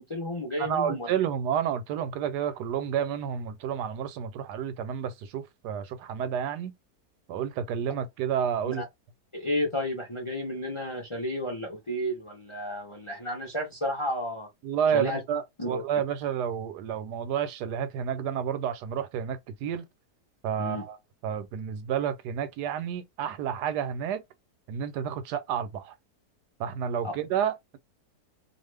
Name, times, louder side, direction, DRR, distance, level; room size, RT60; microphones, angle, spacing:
voice 1, 0.0-1.2 8.6-8.8 9.3-14.5 14.9-15.2 15.6-15.8 20.6-20.8 27.0-27.1, left 1 dB, 35° left, 0.5 m, -32 dB
voice 2, 0.6-6.7 7.3-8.8 14.6-19.9 20.4-21.0 21.2-24.2 24.7-25.9 26.6-27.8, right 8 dB, 85° right, 1.2 m, -30 dB
2.5 x 2.5 x 3.2 m
omnidirectional pair, 1.7 m